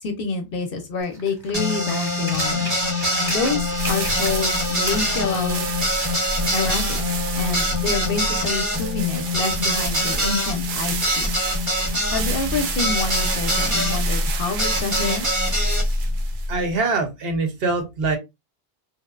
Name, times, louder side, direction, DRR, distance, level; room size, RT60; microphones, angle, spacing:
voice 1, 0.0-2.7 3.3-5.7 6.5-11.5 12.1-15.3, left 4 dB, 65° left, 0.7 m, -27 dB
sound 1, 1.0-4.5 4.8-6.8 7.6-7.7, equal, 5° right, 0.9 m, -36 dB
sound 2, 1.5-14.0 14.6-15.9, left 1 dB, 20° right, 0.5 m, -25 dB
sound 3, 3.6-16.7, right 1 dB, 90° right, 1.0 m, -28 dB
voice 2, 16.5-18.2, right 3 dB, 65° right, 0.8 m, -23 dB
2.9 x 2.0 x 2.2 m
omnidirectional pair, 1.2 m